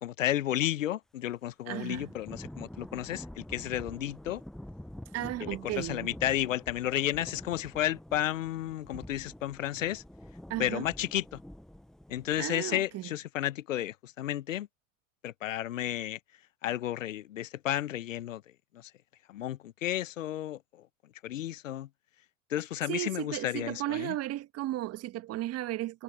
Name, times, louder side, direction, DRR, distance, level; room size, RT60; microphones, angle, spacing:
voice 1, 0.0-4.4 5.4-10.0 10.6-11.4 12.1-14.7 15.2-16.2 16.6-18.4 18.7-18.9 19.3-20.9 21.2-21.9 22.5-24.2, left 12 dB, 70° left, 1.2 m, -32 dB
voice 2, 1.7-2.1 5.1-6.1 10.5-10.9 12.4-13.1 22.9-26.0, right 15 dB, 35° right, 1.9 m, -35 dB
Thunder / Rain, 1.9-12.4, left 1 dB, ahead, 0.7 m, -47 dB
figure-of-eight pair, 85°, 40 cm